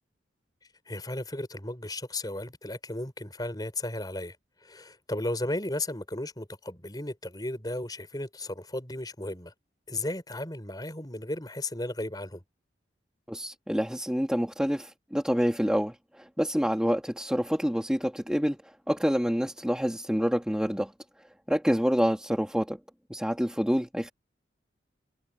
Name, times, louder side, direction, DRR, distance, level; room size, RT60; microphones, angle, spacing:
voice 1, 0.9-9.5 9.9-12.4, left 1 dB, 20° left, 5.3 m, -35 dB
voice 2, 13.3-20.9 21.5-22.8 23.1-24.1, equal, 5° right, 1.4 m, -27 dB
head